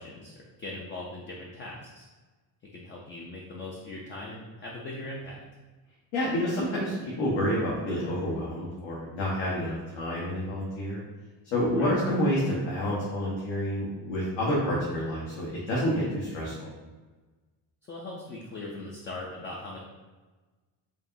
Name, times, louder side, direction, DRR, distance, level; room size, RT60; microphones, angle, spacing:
voice 1, 0.0-2.1 2.7-5.4 11.8-12.0 17.9-19.8, left 2 dB, 25° left, -3 dB, 0.4 m, -40 dB
voice 2, 6.1-11.0 11.5-16.7, equal, 75° left, -7 dB, 1.2 m, -28 dB
4.9 x 2.9 x 2.6 m, 1.3 s
cardioid pair, 135°, 47 cm